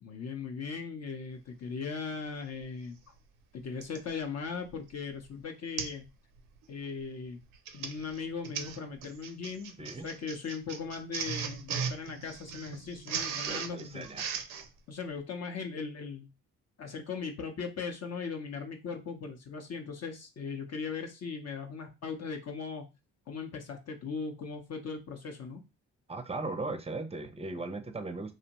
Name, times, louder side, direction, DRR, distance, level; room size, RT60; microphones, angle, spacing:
voice 1, 0.0-3.0 3.5-6.0 6.7-7.4 7.7-14.1 14.9-16.3 16.8-22.9 23.3-25.6, left 5 dB, 50° left, 0.6 m, -38 dB
Printer, 2.6-2.7 3.8-4.1 4.7-4.9 5.2-5.3 5.8-6.0 6.4-6.6 7.4-14.7, right 7 dB, 75° right, 0.6 m, -38 dB
voice 2, 13.4-14.3 26.1-28.3, right 3 dB, 20° right, 0.5 m, -38 dB
2.6 x 2.1 x 2.9 m
supercardioid pair, 60°, 33 cm